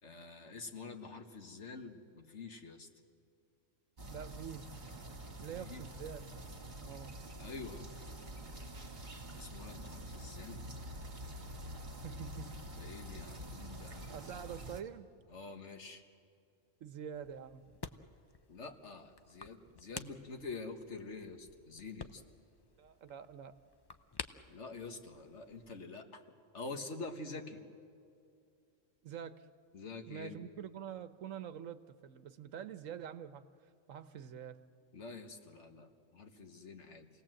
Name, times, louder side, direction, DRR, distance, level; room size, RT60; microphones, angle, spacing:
voice 1, 0.0-2.9 5.6-5.9 7.4-7.9 9.4-10.7 12.8-14.3 15.3-16.0 18.5-22.2 24.5-26.2 26.5-27.6 29.7-30.4 34.9-37.1, left 3 dB, 65° left, 5 dB, 1.8 m, -47 dB
sound 1, 4.0-14.8, right 1 dB, 40° right, 1.9 m, -47 dB
voice 2, 4.1-4.7 5.4-6.3 6.8-7.1 12.0-12.5 14.1-15.1 16.8-17.6 22.8-23.5 29.0-29.4 30.1-33.4 33.9-34.6, right 9 dB, 90° right, 11 dB, 1.3 m, -46 dB
sound 2, 17.1-25.8, left 4 dB, 35° left, 0.4 m, -51 dB
28.5 x 18.5 x 7.7 m, 2.4 s
omnidirectional pair, 1.3 m